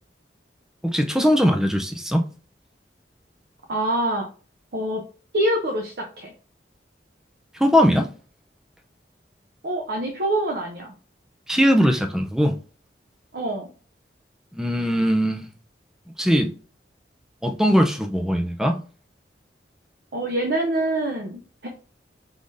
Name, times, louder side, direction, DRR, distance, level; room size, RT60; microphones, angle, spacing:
voice 1, 0.8-2.2 7.6-8.1 11.5-12.6 14.5-15.5 16.2-16.5 17.4-18.8, equal, 5° right, 0.5 m, -20 dB
voice 2, 3.7-4.3 4.7-5.0 5.3-6.3 9.6-10.9 13.3-13.7 20.1-21.7, right 1 dB, 65° right, 0.7 m, -25 dB
4.8 x 3.7 x 2.6 m
head